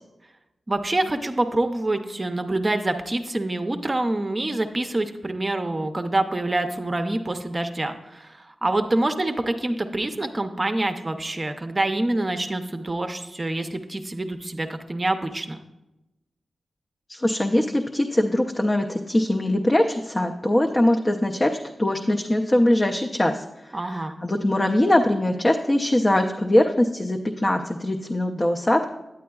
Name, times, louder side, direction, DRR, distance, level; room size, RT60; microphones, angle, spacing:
voice 1, 0.7-15.6 23.7-24.2, right 2 dB, 30° right, 7 dB, 0.6 m, -26 dB
voice 2, 17.1-28.9, left 1 dB, 25° left, 2 dB, 0.5 m, -22 dB
9.4 x 8.3 x 2.3 m, 0.96 s
cardioid pair, 60°, 0 cm